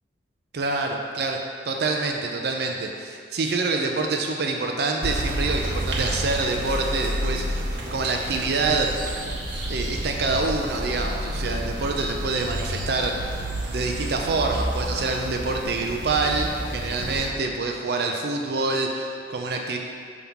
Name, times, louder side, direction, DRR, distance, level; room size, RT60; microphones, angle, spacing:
voice 1, 0.5-1.4 1.7-9.0 9.7-13.3 13.7-19.8, right 3 dB, 60° right, 2 dB, 0.5 m, -26 dB
sound 1, 5.0-17.3, right 1 dB, 90° right, 0.9 m, -30 dB
5.5 x 3.5 x 5.7 m, 2.3 s
head